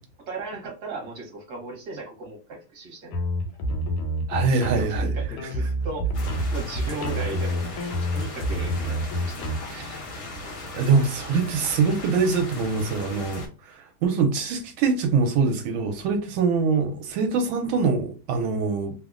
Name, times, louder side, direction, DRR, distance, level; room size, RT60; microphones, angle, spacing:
voice 1, 0.3-3.2 4.4-6.1 6.5-7.8 8.1-9.4, right 3 dB, 55° right, 1.3 m, -36 dB
sound 1, 3.1-9.6, equal, 85° left, 1.5 m, -27 dB
voice 2, 4.3-5.1 5.4-5.5 9.7-9.9 10.7-18.9, right 5 dB, 80° right, 1.3 m, -24 dB
sound 2, 6.1-13.5, left 2 dB, 60° left, 0.7 m, -38 dB
3.3 x 2.1 x 2.4 m
omnidirectional pair, 2.3 m